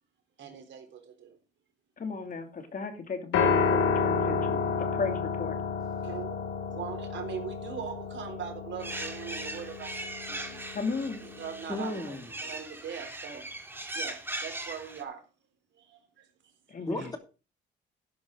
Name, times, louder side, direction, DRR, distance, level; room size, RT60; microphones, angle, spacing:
voice 1, 0.4-1.4 6.0-6.4 6.7-10.6 11.2-12.2 12.4-13.4 13.9-15.2 15.7-16.5 17.0-17.1, right 8 dB, 70° right, 3.8 m, -41 dB
voice 2, 2.0-5.6 10.7-11.2 16.7-17.1, left 4 dB, 45° left, 2.8 m, -35 dB
Piano, 3.3-11.6, left 5 dB, 85° left, 2.7 m, -31 dB
sound 1, 8.8-15.0, right 1 dB, 10° right, 2.5 m, -39 dB
voice 3, 11.7-12.3 16.9-17.2, left 1 dB, 20° left, 2.7 m, -34 dB
11.5 x 11.0 x 3.9 m
cardioid pair, 90°, 20 cm